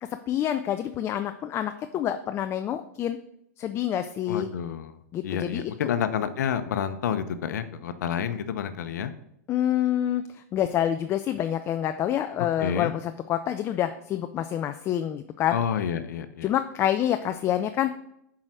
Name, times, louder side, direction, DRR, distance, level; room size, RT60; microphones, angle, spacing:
voice 1, 0.3-3.2 3.6-4.5 5.1-5.9 9.5-15.6 16.4-17.9, left 11 dB, 25° left, 9 dB, 0.4 m, -27 dB
voice 2, 4.3-5.0 5.2-9.1 12.6-12.9 15.5-16.5, left 8 dB, 75° left, 11 dB, 0.8 m, -29 dB
7.4 x 4.8 x 6.2 m, 0.76 s
hypercardioid pair, 130°, 10 cm